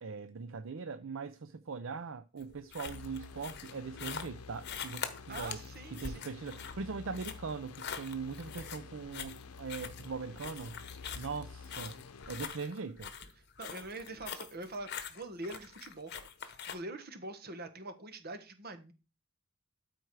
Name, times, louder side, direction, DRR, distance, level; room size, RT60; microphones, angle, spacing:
voice 1, 0.0-5.6 5.9-10.8 11.2-12.0 12.3-13.1, right 5 dB, 60° right, 0.5 m, -41 dB
sound 1, 2.4-16.7, left 7 dB, 50° left, 1.1 m, -44 dB
sound 2, 2.9-12.5, left 5 dB, 80° left, 0.7 m, -50 dB
voice 2, 5.3-6.3 13.6-18.9, right 2 dB, 45° right, 1.3 m, -44 dB
sound 3, 13.2-14.2, equal, 20° left, 1.1 m, -64 dB
13.0 x 4.5 x 4.7 m
head